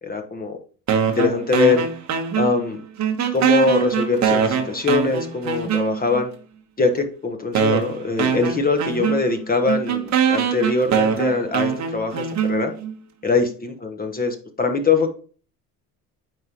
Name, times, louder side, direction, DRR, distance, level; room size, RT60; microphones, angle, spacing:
voice 1, 0.0-0.6 1.1-1.8 2.4-2.8 3.3-6.3 6.8-12.7 13.2-15.1, left 4 dB, 25° left, 5 dB, 1.1 m, -22 dB
sound 1, 0.9-2.7 3.0-6.2 7.0-7.1 7.5-12.9, right 7 dB, 45° right, 1.2 m, -23 dB
9.2 x 3.7 x 3.0 m, 0.40 s
supercardioid pair, 90°, 38 cm